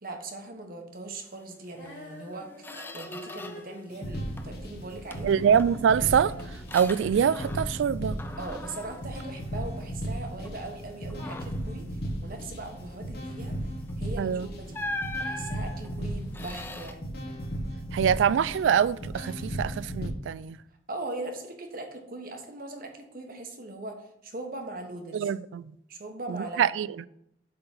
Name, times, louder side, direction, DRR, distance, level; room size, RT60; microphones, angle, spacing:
voice 1, 0.0-5.3 8.4-13.5 14.0-14.8 15.2-17.0 20.9-24.0 24.2-25.3 25.9-26.6, right 2 dB, 50° right, 1.2 m, -40 dB
Female singing, 1.7-7.9, equal, 75° left, 2.1 m, -48 dB
Squeak, 1.8-2.0 2.3-3.8 4.1-4.7 5.1-7.9 8.2-10.0 10.4-10.7 11.1-11.7 13.8-14.0 14.7-16.9, left 2 dB, 10° left, 0.4 m, -40 dB
sound 1, 3.9-20.1, right 1 dB, 55° left, 1.2 m, -36 dB
voice 2, 5.2-6.3 6.7-8.2 14.2-14.5 17.9-20.6 25.1-25.7 26.3-26.9, right 8 dB, 90° right, 0.3 m, -24 dB
7.8 x 3.9 x 5.8 m
head